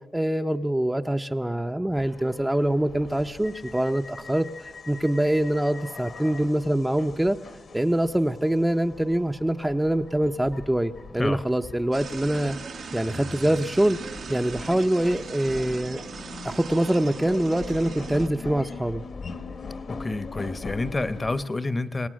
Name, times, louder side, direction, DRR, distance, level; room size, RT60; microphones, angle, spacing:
voice 1, 0.1-7.4 7.7-12.6 12.9-14.0 14.3-16.0 16.4-19.0, right 1 dB, 10° right, 5 dB, 0.6 m, -24 dB
sound 1, 1.9-21.5, left 4 dB, 55° left, 1.2 m, -42 dB
sound 2, 11.9-18.3, right 6 dB, 65° right, 0.9 m, -39 dB
voice 2, 19.9-22.1, left 2 dB, 25° left, 13 dB, 0.9 m, -28 dB
25.5 x 18.5 x 6.3 m, 1.2 s
cardioid pair, 90°, 0 cm